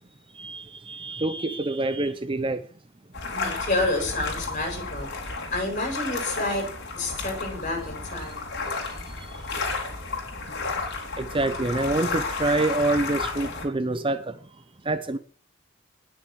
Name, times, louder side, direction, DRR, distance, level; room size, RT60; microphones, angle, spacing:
voice 1, 0.3-2.7 9.1-9.4 11.2-14.4 14.8-15.2, right 2 dB, 25° right, 0.7 m, -27 dB
sound 1, 3.1-13.7, left 3 dB, 55° left, 3.9 m, -32 dB
voice 2, 3.3-5.1 5.5-6.6 7.0-8.5, left 2 dB, 40° left, 7.7 m, -29 dB
19.0 x 6.6 x 6.3 m
head